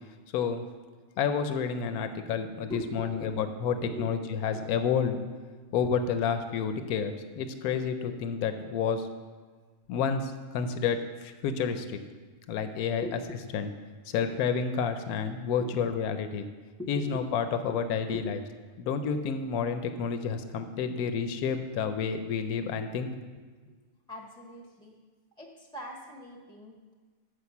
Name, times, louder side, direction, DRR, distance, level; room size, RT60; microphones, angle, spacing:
voice 1, 0.3-0.6 1.2-5.2 5.7-9.1 9.9-12.0 12.5-13.1 13.5-13.7 14.1-16.5 16.9-18.4 18.8-23.1, left 6 dB, 90° left, 9 dB, 1.1 m, -30 dB
voice 2, 2.7-3.3 3.8-4.1 4.5-4.6 13.0-13.2 15.6-15.7 16.8-17.2 17.6-17.7 18.1-18.3 24.1-25.0 25.4-26.9, left 1 dB, 5° left, 0 dB, 0.4 m, -40 dB
7.9 x 5.1 x 7.0 m, 1.4 s
omnidirectional pair, 1.5 m